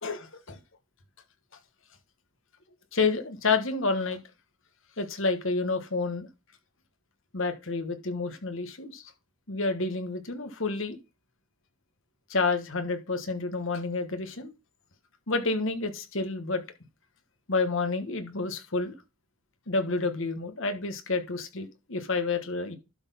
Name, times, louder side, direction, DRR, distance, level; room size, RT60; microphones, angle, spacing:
voice 1, 0.0-0.6 2.9-4.2 5.0-6.3 7.3-9.0 9.5-11.0 12.3-14.5 15.3-16.6 17.5-18.9 19.7-22.8, left 3 dB, 60° left, 1.3 m, -29 dB
12.0 x 4.2 x 5.4 m
head